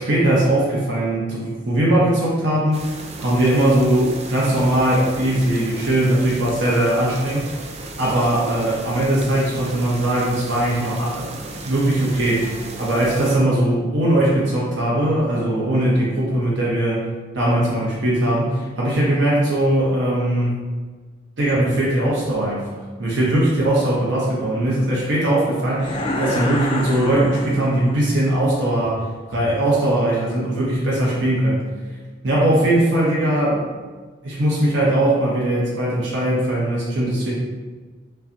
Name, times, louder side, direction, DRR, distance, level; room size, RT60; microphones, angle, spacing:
voice 1, 0.0-2.8 3.2-7.6 8.0-11.3 11.6-17.1 17.3-20.6 21.4-31.6 32.2-33.7 34.2-37.3, right 1 dB, 85° right, -6 dB, 0.9 m, -20 dB
sound 1, 2.7-13.4, right 2 dB, 35° right, 0.4 m, -35 dB
sound 2, 25.8-28.1, left 1 dB, 30° left, 0.4 m, -27 dB
5.6 x 2.3 x 2.6 m, 1.4 s
head